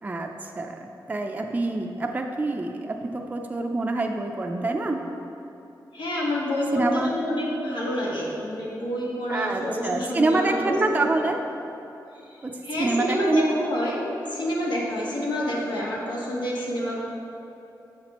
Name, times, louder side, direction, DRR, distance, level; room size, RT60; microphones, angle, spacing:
voice 1, 0.0-5.0 6.7-7.1 9.3-11.4 12.4-12.5 12.8-13.6, right 2 dB, 20° right, 2 dB, 0.4 m, -26 dB
voice 2, 5.9-11.1 12.3-12.4 12.6-17.0, left 1 dB, 90° left, -5 dB, 1.4 m, -28 dB
7.8 x 6.0 x 2.9 m, 2.9 s
wide cardioid pair, 115°, 8 cm